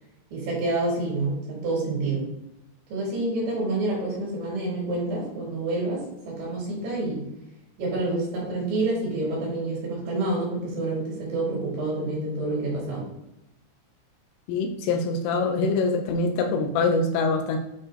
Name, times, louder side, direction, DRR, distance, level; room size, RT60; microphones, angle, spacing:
voice 1, 0.3-2.3 2.9-7.2 7.8-13.0, right 2 dB, 70° right, -5 dB, 5.5 m, -28 dB
voice 2, 14.5-17.6, left 3 dB, 85° left, 5 dB, 3.4 m, -24 dB
10.5 x 4.9 x 2.9 m, 0.88 s
omnidirectional pair, 5.8 m